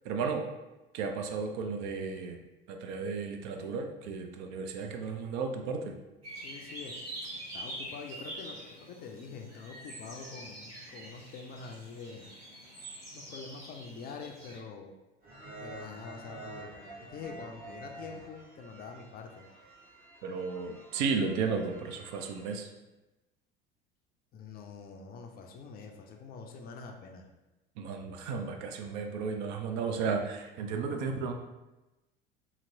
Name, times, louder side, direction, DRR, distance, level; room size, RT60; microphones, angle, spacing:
voice 1, 0.0-0.4 0.9-2.4 2.7-5.9 20.2-22.7 27.8-31.3, right 5 dB, 55° right, 4 dB, 0.5 m, -34 dB
sound 1, 6.2-14.6, right 1 dB, 85° right, 1.2 m, -45 dB
voice 2, 6.4-7.0 7.3-12.3 12.7-12.8 13.1-14.9 15.6-19.5 24.3-27.3, left 5 dB, 30° left, 3 dB, 0.4 m, -45 dB
sound 2, 15.2-22.6, right 2 dB, 30° right, 1.0 m, -49 dB
2.9 x 2.8 x 2.6 m, 1.0 s
figure-of-eight pair, 70°, 29 cm